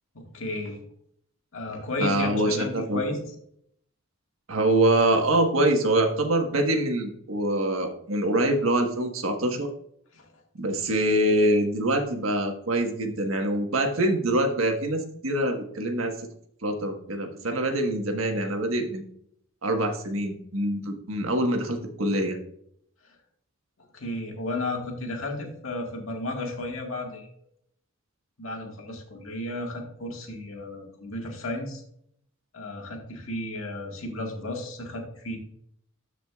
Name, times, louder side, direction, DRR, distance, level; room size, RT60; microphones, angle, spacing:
voice 1, 0.3-0.8 1.5-3.4 10.1-10.3 23.0-23.1 23.9-27.3 28.4-31.8 32.5-35.4, left 2 dB, 75° left, 1 dB, 1.8 m, -33 dB
voice 2, 2.0-3.0 4.5-9.7 10.6-16.1 16.6-19.1 19.6-22.4, right 1 dB, 80° right, 4 dB, 1.4 m, -24 dB
13.5 x 5.0 x 2.4 m, 0.68 s
head